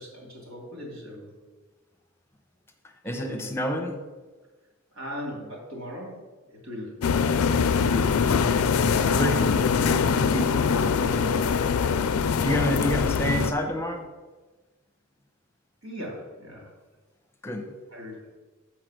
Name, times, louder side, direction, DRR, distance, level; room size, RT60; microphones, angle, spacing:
voice 1, 0.0-1.3 3.1-3.5 4.9-6.3 6.6-7.0 8.9-9.6 9.9-11.6 15.8-16.7 17.9-18.4, equal, 80° right, -1 dB, 2.6 m, -38 dB
voice 2, 3.0-4.0 7.8-8.1 9.1-9.4 10.3-10.4 12.4-14.0 17.4-17.7, equal, 10° left, 5 dB, 0.8 m, -28 dB
sound 1, 7.0-13.5, left 6 dB, 85° left, 0.4 m, -23 dB
7.7 x 4.8 x 6.3 m, 1.3 s
head